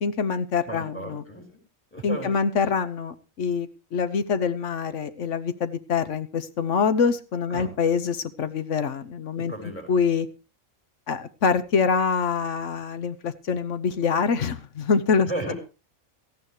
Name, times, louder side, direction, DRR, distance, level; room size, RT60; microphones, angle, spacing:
voice 1, 0.0-1.2 2.0-9.5 9.9-10.3 11.1-15.5, left 5 dB, 70° left, 12 dB, 1.2 m, -25 dB
voice 2, 0.7-1.6 1.9-2.3 7.5-7.7 9.4-9.9 15.3-15.5, right 1 dB, 10° left, 4 dB, 5.0 m, -34 dB
17.5 x 14.0 x 3.2 m, 0.32 s
omnidirectional pair, 1.4 m